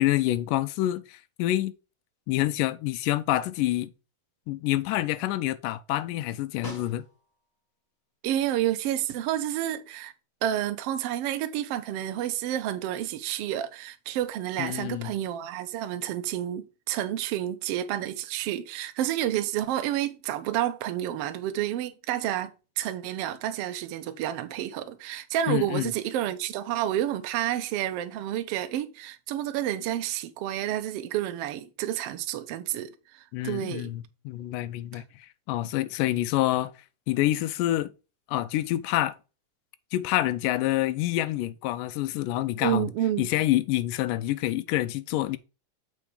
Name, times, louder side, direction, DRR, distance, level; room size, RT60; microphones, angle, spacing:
voice 1, 0.0-1.7 2.3-3.9 4.5-7.0 14.6-15.1 25.5-25.9 33.3-35.0 35.5-36.7 37.1-37.9 38.3-39.2 39.9-42.9 43.2-45.4, left 15 dB, 90° left, 2.2 m, -27 dB
Snare drum, 6.6-7.5 12.0-12.1, left 2 dB, 30° left, 1.4 m, -42 dB
voice 2, 8.2-10.1 10.4-22.5 22.8-33.9 34.9-35.0 42.6-43.3, right 12 dB, 85° right, 1.3 m, -30 dB
7.2 x 4.6 x 4.9 m
omnidirectional pair, 3.7 m